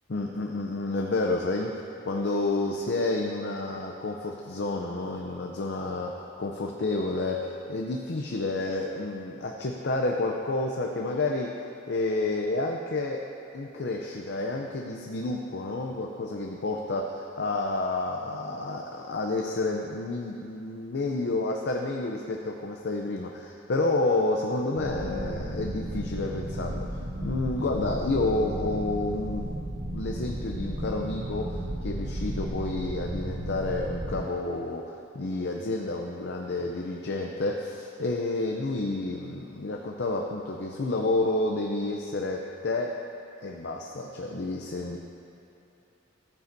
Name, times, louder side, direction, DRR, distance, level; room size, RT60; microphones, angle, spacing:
voice 1, 0.1-1.8 2.0-13.2 13.5-29.5 29.9-43.0 43.4-45.0, left 2 dB, 55° left, 1 dB, 0.5 m, -30 dB
sound 1, 24.7-34.2, right 1 dB, 80° right, 1.3 m, -34 dB
13.0 x 9.5 x 2.7 m, 2.9 s
head